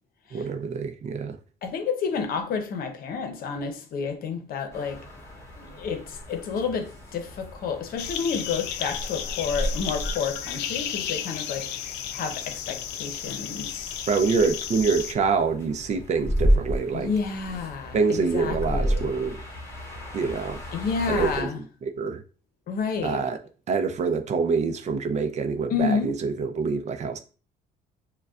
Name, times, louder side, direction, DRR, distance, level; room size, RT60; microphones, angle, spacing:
voice 1, 0.3-1.4 14.1-17.1 17.9-19.4 20.1-20.6 21.1-22.2 23.0-23.4 23.7-27.2, right 5 dB, 45° right, 0.5 m, -26 dB
voice 2, 1.6-5.0 5.6-13.9 16.9-19.1 20.7-21.6 22.7-23.2 25.7-26.2, left 5 dB, 60° left, 0.8 m, -30 dB
sound 1, 4.7-21.4, equal, 15° left, 1.4 m, -33 dB
sound 2, 8.0-15.1, left 9 dB, 90° left, 0.5 m, -33 dB
6.6 x 2.2 x 2.4 m
cardioid pair, 110°, 17 cm